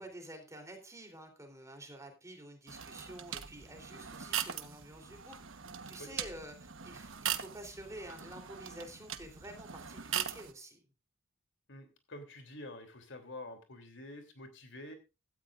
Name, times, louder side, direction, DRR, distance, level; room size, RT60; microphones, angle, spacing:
voice 1, 0.0-10.8, right 1 dB, 15° right, 5 dB, 3.5 m, -49 dB
sound 1, 2.7-10.5, right 9 dB, 75° right, 1.2 m, -41 dB
voice 2, 5.6-6.2 11.7-14.9, left 1 dB, 65° left, 7 dB, 3.2 m, -48 dB
16.5 x 13.0 x 2.5 m, 0.28 s
head